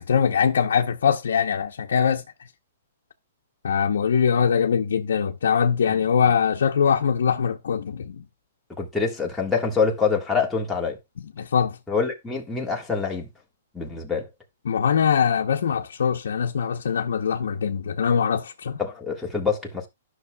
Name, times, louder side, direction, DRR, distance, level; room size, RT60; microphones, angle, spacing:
voice 1, 0.0-2.2 3.6-8.2 11.4-11.8 14.7-18.8, left 7 dB, 80° left, 0.8 m, -22 dB
voice 2, 8.8-11.0 11.9-13.3 13.7-14.3 18.8-19.9, left 5 dB, 5° left, 1.6 m, -25 dB
12.5 x 6.2 x 2.3 m
hypercardioid pair, 160°, 0 cm